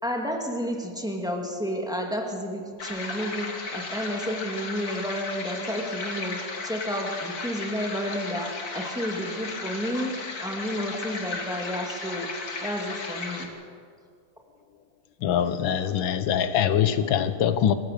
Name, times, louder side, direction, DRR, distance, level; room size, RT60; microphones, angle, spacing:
voice 1, 0.0-12.3 12.6-13.5, equal, ahead, 1 dB, 2.2 m, -31 dB
sound 1, 2.8-13.5, left 3 dB, 50° left, 2.3 m, -35 dB
voice 2, 15.2-17.7, left 9 dB, 80° left, 12 dB, 1.7 m, -23 dB
26.5 x 15.5 x 6.7 m, 2.2 s
omnidirectional pair, 2.1 m